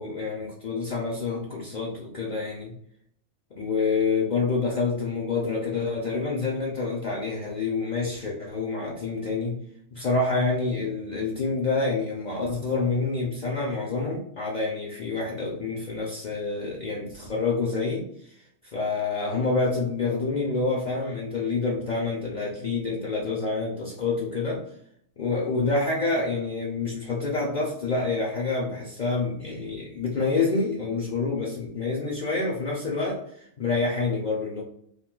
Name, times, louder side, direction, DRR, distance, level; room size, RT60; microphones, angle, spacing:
voice 1, 0.0-2.7 3.5-9.6 9.9-24.6 25.2-34.6, left 3 dB, 50° left, -2 dB, 0.6 m, -27 dB
2.5 x 2.3 x 3.7 m, 0.67 s
omnidirectional pair, 1.1 m